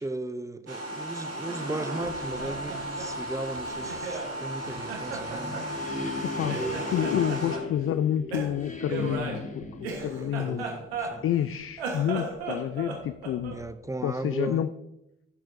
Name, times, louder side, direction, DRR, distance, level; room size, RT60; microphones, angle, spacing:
voice 1, 0.0-5.6 6.5-6.8 10.1-11.2 13.5-14.7, right 2 dB, 10° right, 0.7 m, -36 dB
sound 1, 0.7-7.6, equal, 50° right, 3.0 m, -35 dB
Laughter, 2.0-4.3 4.7-6.2 6.5-7.7 8.3-11.4 11.7-13.7, right 4 dB, 85° right, 1.3 m, -36 dB
sound 2, 5.1-11.6, left 2 dB, 25° left, 1.5 m, -37 dB
voice 2, 6.2-6.6 6.9-10.7 11.2-13.6 14.0-14.7, left 11 dB, 45° left, 0.4 m, -29 dB
13.5 x 7.5 x 2.6 m
hypercardioid pair, 45°, 31 cm